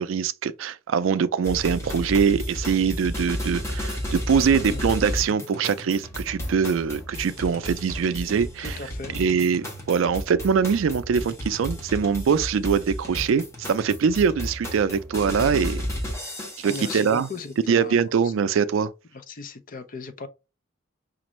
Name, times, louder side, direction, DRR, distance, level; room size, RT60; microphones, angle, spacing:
voice 1, 0.0-8.8 9.1-15.8 16.6-17.3 17.7-18.9, right 6 dB, 75° right, 0.4 m, -23 dB
sound 1, 1.4-17.4, equal, 15° left, 1.3 m, -33 dB
voice 2, 8.6-9.2 16.6-18.3 19.1-20.3, left 4 dB, 45° left, 0.5 m, -37 dB
5.2 x 2.5 x 3.0 m
head